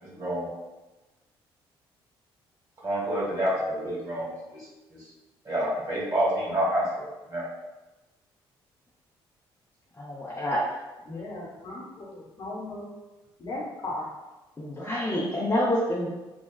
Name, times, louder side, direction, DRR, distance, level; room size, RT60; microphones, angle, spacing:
voice 1, 0.0-0.5 2.8-4.6 4.9-5.0 5.4-6.9 7.3-7.4, right 1 dB, 25° right, -6 dB, 1.5 m, -28 dB
voice 2, 10.0-10.6 11.1-11.3 14.6-16.2, left 1 dB, 20° left, -7 dB, 0.7 m, -28 dB
voice 3, 11.1-12.9 13.4-14.1, left 2 dB, 40° left, -5 dB, 1.0 m, -37 dB
3.3 x 2.2 x 2.2 m, 1.1 s
figure-of-eight pair, 45°, 13 cm